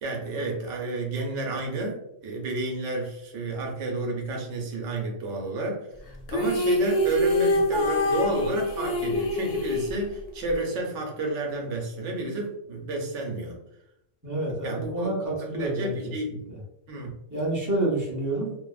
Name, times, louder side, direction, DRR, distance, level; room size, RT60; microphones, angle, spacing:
voice 1, 0.0-5.9 6.3-13.6 14.6-15.2 15.6-16.4 16.9-17.2, right 2 dB, 85° right, 1 dB, 1.0 m, -31 dB
sound 1, 6.3-10.5, left 1 dB, 60° left, 0.7 m, -25 dB
voice 2, 14.2-16.6 17.3-18.6, right 1 dB, 20° right, -5 dB, 0.6 m, -29 dB
2.7 x 2.0 x 2.3 m, 0.80 s
omnidirectional pair, 1.2 m